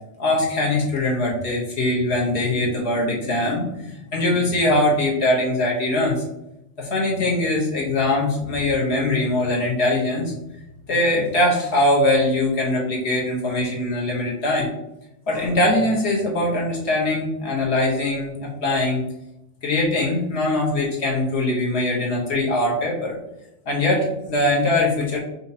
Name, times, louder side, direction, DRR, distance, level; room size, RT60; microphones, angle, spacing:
voice 1, 0.2-6.2 6.8-10.3 10.9-14.7 15.3-19.0 19.6-23.2 23.7-25.2, left 1 dB, 65° left, -4 dB, 1.3 m, -22 dB
5.6 x 2.7 x 2.8 m, 0.87 s
omnidirectional pair, 1.3 m